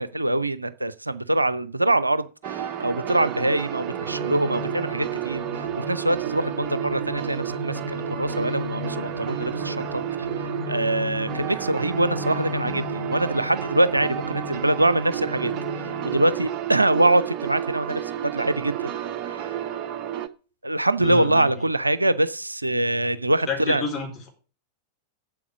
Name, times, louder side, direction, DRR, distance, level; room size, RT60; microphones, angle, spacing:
voice 1, 0.0-10.3 10.7-15.5 15.8-18.9 19.3-19.6 20.6-23.8, right 1 dB, 85° right, 0.6 m, -24 dB
sound 1, 2.4-20.3, right 11 dB, 40° right, 0.9 m, -31 dB
sound 2, 4.0-17.0, left 5 dB, 60° right, 1.4 m, -37 dB
voice 2, 21.0-21.5 23.5-24.3, left 3 dB, 25° left, 4.6 m, -29 dB
8.5 x 7.5 x 6.2 m
figure-of-eight pair, 90°, 0 cm